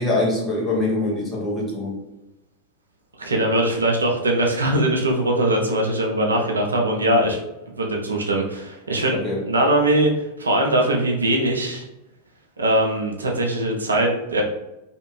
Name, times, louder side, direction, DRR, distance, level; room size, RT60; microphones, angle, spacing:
voice 1, 0.0-1.9 9.1-9.4, left 2 dB, 25° left, -3 dB, 1.0 m, -23 dB
voice 2, 3.2-7.4 7.8-9.2 9.5-11.8 12.6-14.4, right 1 dB, 75° right, 1 dB, 0.5 m, -21 dB
2.7 x 2.5 x 3.1 m, 0.93 s
figure-of-eight pair, 90°, 0 cm